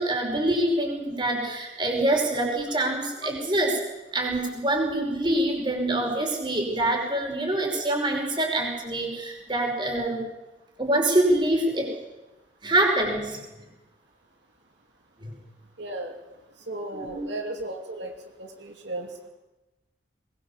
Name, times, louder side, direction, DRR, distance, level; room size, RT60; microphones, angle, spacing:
voice 1, 0.0-3.8 4.1-10.2 10.8-11.9 12.6-13.6 15.2-15.3 16.9-17.3, right 1 dB, 25° right, 1 dB, 5.4 m, -25 dB
voice 2, 15.8-16.2 16.7-18.1 18.4-19.3, right 2 dB, 70° right, 3 dB, 2.8 m, -35 dB
22.0 x 21.5 x 7.3 m, 1.0 s
head